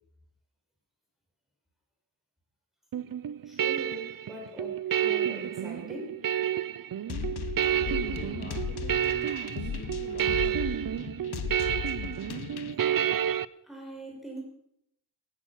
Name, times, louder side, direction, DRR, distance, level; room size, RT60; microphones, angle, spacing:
sound 1, 2.9-13.5, right 10 dB, 55° right, 0.6 m, -30 dB
voice 1, 3.4-4.7 5.0-6.2 13.7-14.4, equal, ahead, -1 dB, 5.9 m, -41 dB
sound 2, 7.1-12.7, left 8 dB, 70° left, 1.0 m, -36 dB
voice 2, 7.7-10.6, left 2 dB, 25° left, -1 dB, 2.4 m, -44 dB
15.5 x 11.5 x 7.3 m, 0.74 s
wide cardioid pair, 180°, 40 cm